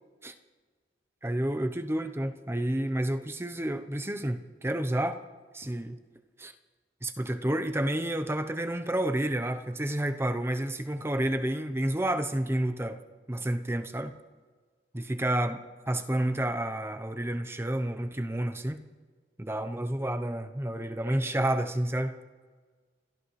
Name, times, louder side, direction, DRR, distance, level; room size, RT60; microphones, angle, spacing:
voice 1, 1.2-5.2 5.5-6.0 6.4-6.5 7.0-13.0 13.3-14.1 14.9-18.8 19.4-22.1, right 1 dB, 15° right, 8 dB, 0.8 m, -30 dB
29.5 x 14.5 x 3.2 m, 1.5 s
head